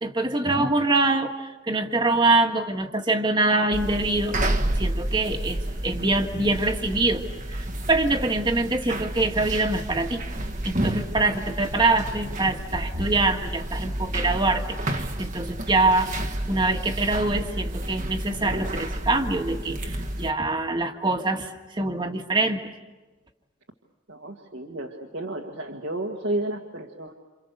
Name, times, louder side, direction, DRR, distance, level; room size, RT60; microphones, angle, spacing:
voice 1, 0.0-4.4 4.8-7.2 7.6-10.2 10.6-16.2 16.5-22.7, right 2 dB, 20° right, 4 dB, 1.8 m, -24 dB
sound 1, 3.7-20.3, right 1 dB, 40° right, 1.5 m, -30 dB
voice 2, 24.1-27.1, right 1 dB, 65° right, 0 dB, 1.9 m, -32 dB
28.5 x 28.0 x 6.7 m, 1.2 s
head